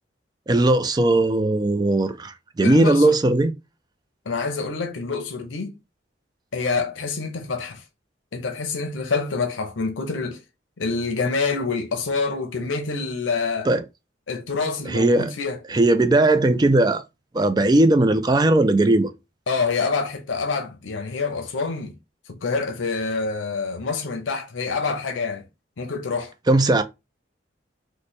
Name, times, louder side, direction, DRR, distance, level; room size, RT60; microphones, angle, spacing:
voice 1, 0.5-3.5 13.7-13.8 14.9-15.3 15.7-17.0 17.3-19.1 26.5-26.8, right 2 dB, 20° right, 0.3 m, -18 dB
voice 2, 2.6-3.2 4.3-5.8 6.5-7.8 8.3-10.4 10.8-13.7 14.3-15.6 19.5-22.0 22.3-25.5 25.8-26.3, left 4 dB, 90° left, 0.6 m, -26 dB
3.2 x 2.1 x 4.2 m
head